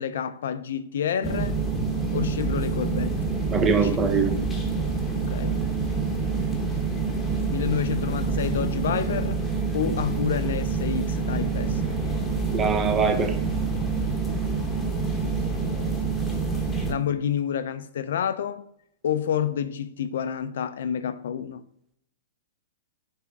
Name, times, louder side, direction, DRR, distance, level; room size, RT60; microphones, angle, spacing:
voice 1, 0.0-1.6 2.1-3.2 3.8-3.9 5.2-5.6 7.5-9.4 9.7-11.9 16.9-18.6 19.0-21.6, left 8 dB, 70° left, 0.6 m, -29 dB
sound 1, 1.2-16.9, right 4 dB, 10° left, 1.1 m, -27 dB
voice 2, 3.5-4.3 12.5-13.4, right 5 dB, 15° right, 0.7 m, -22 dB
9.9 x 3.6 x 3.5 m
hypercardioid pair, 155°, 0 cm